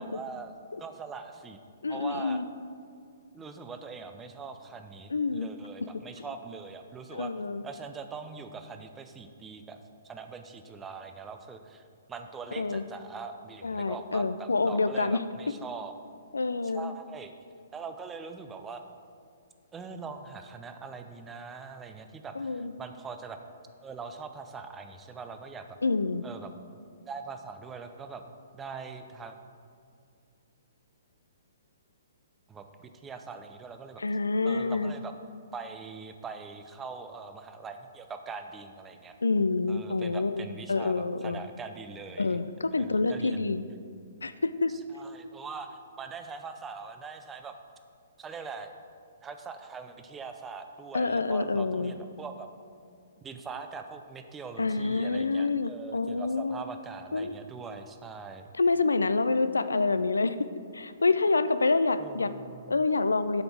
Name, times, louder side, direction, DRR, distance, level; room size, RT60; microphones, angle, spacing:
voice 1, 0.0-0.5 0.8-1.6 1.9-2.4 3.3-7.3 7.6-9.8 10.0-15.9 16.7-17.3 17.7-18.8 19.7-23.4 23.8-25.8 26.2-26.5 27.1-28.2 28.5-29.4 32.5-34.0 34.4-35.1 35.5-39.2 39.7-42.4 42.8-43.5 44.7-47.6 48.2-48.7 49.2-52.5 53.2-58.5 62.0-62.8, right 5 dB, 15° right, 7 dB, 0.6 m, -42 dB
voice 2, 1.8-2.4 5.1-5.5 7.1-7.6 12.6-12.8 13.6-15.2 16.3-16.9 22.4-22.7 25.8-26.2 34.0-34.9 39.2-41.4 42.2-43.6 44.2-44.7 50.9-51.9 54.6-56.6 57.1-57.3 58.5-60.5 60.7-62.3 62.7-63.4, left 3 dB, 85° left, 12 dB, 0.4 m, -27 dB
7.9 x 5.2 x 6.0 m, 2.3 s
figure-of-eight pair, 125°, 0 cm